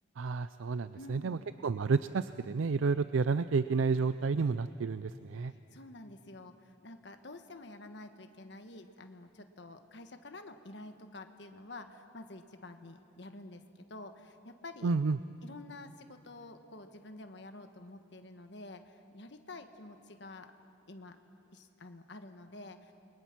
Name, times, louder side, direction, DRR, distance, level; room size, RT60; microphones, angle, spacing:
voice 1, 0.2-5.5 14.8-15.2, right 4 dB, 90° right, 13 dB, 0.5 m, -30 dB
voice 2, 0.9-1.5 5.5-15.0 15.4-20.5 20.9-21.2 21.5-22.9, left 2 dB, 60° left, 7 dB, 1.3 m, -49 dB
29.5 x 22.5 x 6.0 m, 2.6 s
head